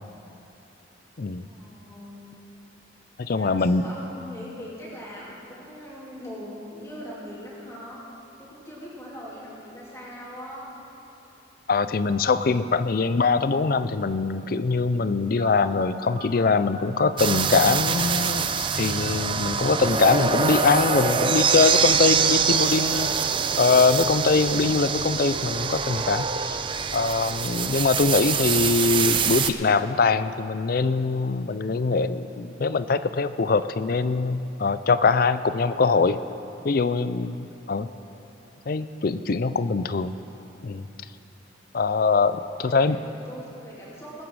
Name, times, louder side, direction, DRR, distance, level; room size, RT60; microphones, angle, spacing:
voice 1, 1.4-2.4 3.3-8.0 8.4-10.7 42.3-44.2, equal, 15° left, -7 dB, 3.0 m, -41 dB
voice 2, 3.2-3.8 11.7-23.3 23.6-26.6 26.9-36.2 36.6-37.9 38.7-40.2 40.6-40.8 41.7-43.0, left 4 dB, 50° left, 13 dB, 0.4 m, -23 dB
sound 1, 15.4-24.9, right 2 dB, 45° right, 1.4 m, -46 dB
abused sphere, 17.2-29.5, right 6 dB, 25° right, 0.4 m, -24 dB
21.0 x 9.0 x 4.8 m, 2.9 s
head